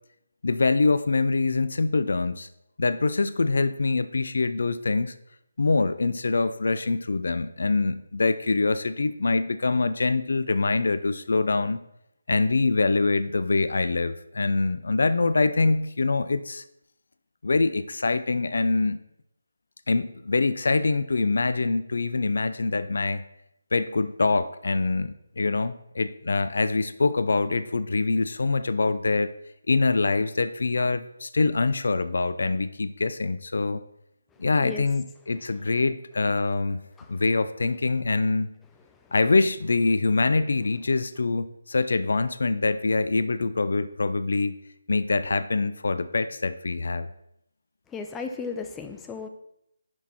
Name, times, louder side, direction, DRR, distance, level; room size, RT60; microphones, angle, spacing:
voice 1, 0.4-2.5 2.8-5.1 5.6-11.8 12.3-16.6 17.4-19.0 19.9-23.2 23.7-29.3 29.7-33.8 34.4-36.8 37.1-38.5 39.1-44.6 44.9-47.1, left 3 dB, 60° left, 13 dB, 0.5 m, -24 dB
voice 2, 34.5-34.9 37.0-37.1 47.9-49.3, left 4 dB, 10° left, 6 dB, 0.7 m, -35 dB
10.5 x 6.2 x 4.3 m, 0.80 s
figure-of-eight pair, 150°, 0 cm